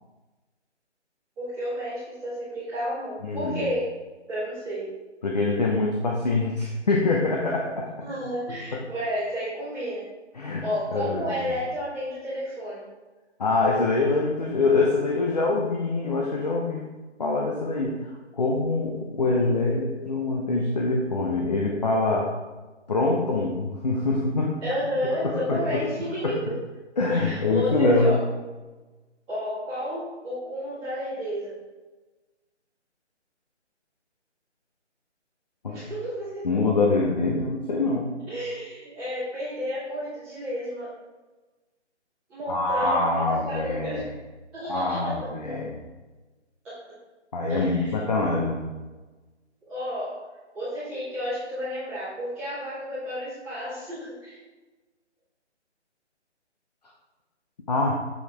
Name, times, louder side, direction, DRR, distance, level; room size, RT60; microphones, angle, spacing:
voice 1, 1.4-3.9 4.3-4.9 8.0-10.1 10.6-12.8 24.6-26.6 27.1-28.2 29.3-31.5 35.7-36.5 38.3-40.9 42.3-44.0 44.5-45.1 46.6-46.8 47.5-48.0 49.7-50.3 50.5-54.4, equal, ahead, -19 dB, 0.6 m, -31 dB
voice 2, 3.2-3.6 5.2-7.9 8.7-8.8 10.4-10.6 10.9-11.5 13.4-16.8 17.2-18.0 18.3-22.3 22.9-24.5 25.2-25.8 26.2-26.4 27.0-28.2 35.6-35.8 36.4-38.2 42.5-44.0 44.7-45.7 47.3-48.7 57.7-58.0, left 3 dB, 35° left, -1 dB, 0.7 m, -24 dB
7.0 x 4.7 x 3.4 m, 1.2 s
figure-of-eight pair, 155°, 35 cm